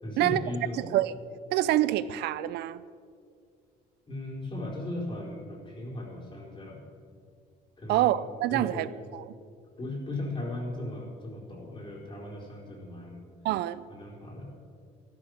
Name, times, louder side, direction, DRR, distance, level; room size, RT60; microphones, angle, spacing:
voice 1, 0.0-0.9 4.1-6.8 7.8-8.1 8.5-9.0 9.8-13.2 13.9-14.5, left 1 dB, 30° left, -4 dB, 4.4 m, -37 dB
voice 2, 0.8-1.1 1.5-2.8 7.9-8.9 9.1-9.2 13.4-13.8, right 14 dB, 80° right, 17 dB, 0.6 m, -26 dB
13.0 x 12.5 x 6.5 m, 2.2 s
cardioid pair, 110°, 17 cm